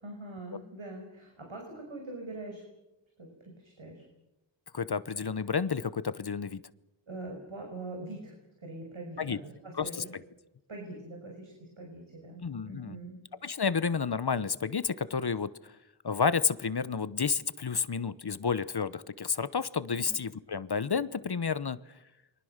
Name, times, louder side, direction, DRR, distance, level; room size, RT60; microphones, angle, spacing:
voice 1, 0.0-2.6 3.2-4.0 7.1-10.1 10.7-13.2 20.0-20.2, right 2 dB, 75° right, 1 dB, 5.9 m, -43 dB
voice 2, 4.7-6.6 9.2-9.4 9.8-9.9 12.4-13.0 13.4-15.5 16.0-21.8, left 5 dB, 55° left, 15 dB, 1.0 m, -30 dB
29.0 x 23.5 x 6.6 m, 0.93 s
wide cardioid pair, 50°, 47 cm